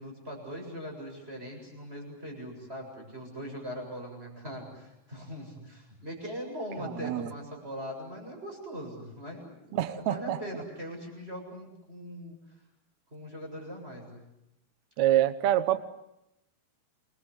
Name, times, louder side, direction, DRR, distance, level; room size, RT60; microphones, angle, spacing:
voice 1, 0.0-9.5 9.9-12.4 13.1-14.2, equal, 15° right, 1 dB, 7.8 m, -41 dB
voice 2, 7.0-7.3 9.7-10.4 15.0-15.8, right 12 dB, 65° right, 13 dB, 2.1 m, -26 dB
28.5 x 21.5 x 8.1 m, 0.86 s
omnidirectional pair, 4.0 m